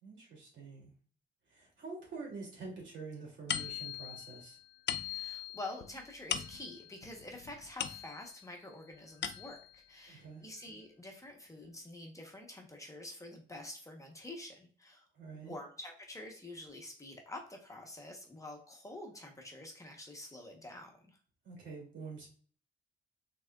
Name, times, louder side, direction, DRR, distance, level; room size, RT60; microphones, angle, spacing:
voice 1, 0.0-0.9 1.5-4.6 10.1-10.4 15.1-15.5 21.4-22.3, right 4 dB, 70° right, -2 dB, 2.4 m, -46 dB
sound 1, 3.5-8.5 8.9-9.8, left 10 dB, 65° left, 0.4 m, -40 dB
voice 2, 5.0-15.0 15.3-21.2, left 1 dB, 15° left, 1 dB, 0.8 m, -47 dB
6.1 x 3.7 x 2.2 m, 0.43 s
wide cardioid pair, 160°, 20 cm